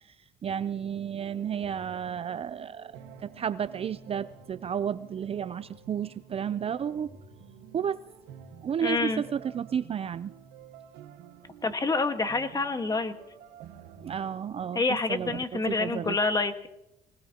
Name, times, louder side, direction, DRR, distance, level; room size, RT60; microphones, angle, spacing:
voice 1, 0.4-2.9 3.2-7.1 7.7-8.0 8.6-10.3 14.0-14.8 15.1-16.2, right 8 dB, 35° right, 14 dB, 0.5 m, -32 dB
sound 1, 0.9-14.2, right 7 dB, 85° right, 1.6 m, -50 dB
voice 2, 8.8-9.2 11.6-13.1 14.7-16.7, left 3 dB, 20° left, 7 dB, 1.5 m, -27 dB
25.0 x 18.5 x 2.9 m, 0.87 s
cardioid pair, 110°, 17 cm